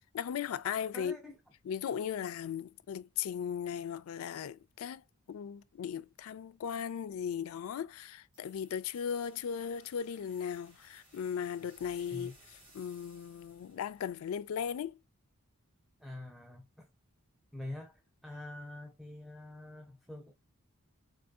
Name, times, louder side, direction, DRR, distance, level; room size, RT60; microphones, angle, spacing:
voice 1, 0.1-1.1 1.7-5.0 5.3-12.3 12.7-15.0, left 8 dB, 80° left, 0.3 m, -37 dB
voice 2, 0.9-1.4 12.1-12.3 16.0-16.9 17.5-20.3, left 2 dB, ahead, 0.4 m, -45 dB
sound 1, 8.3-14.9, right 1 dB, 25° right, 2.5 m, -62 dB
4.7 x 2.6 x 2.3 m
head